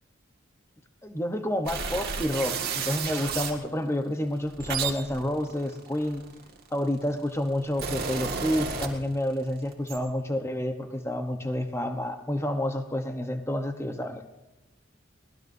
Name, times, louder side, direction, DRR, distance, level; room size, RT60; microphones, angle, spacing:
voice 1, 1.0-6.2 6.7-14.3, left 1 dB, 15° left, 6 dB, 1.0 m, -29 dB
sound 1, 1.7-3.6 4.3-6.7 7.4-9.4 9.7-10.0, right 6 dB, 50° right, 2.0 m, -32 dB
23.0 x 19.0 x 2.7 m, 1.1 s
head